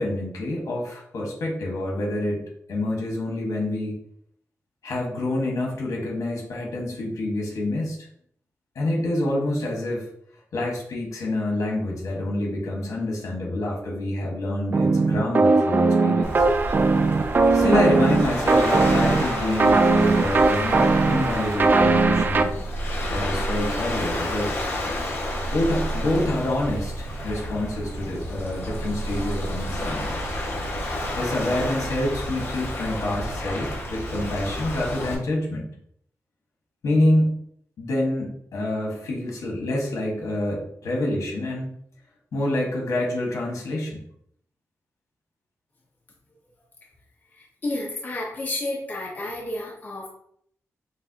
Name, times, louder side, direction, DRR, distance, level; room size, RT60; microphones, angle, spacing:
voice 1, 0.0-2.4 2.7-4.0 4.8-8.1 8.7-10.1 10.5-16.5 17.5-22.5 23.1-24.6 25.5-30.1 31.1-35.7 36.8-37.4 37.8-41.8 42.3-44.0, left 1 dB, 75° left, -2 dB, 1.5 m, -27 dB
sound 1, 14.7-22.5, right 3 dB, 35° right, 0.4 m, -20 dB
Waves surf, 16.2-35.1, equal, 50° left, 1.6 m, -30 dB
voice 2, 47.6-50.1, left 2 dB, 30° left, -3 dB, 0.9 m, -30 dB
6.8 x 2.6 x 2.9 m, 0.68 s
wide cardioid pair, 155°, 6 cm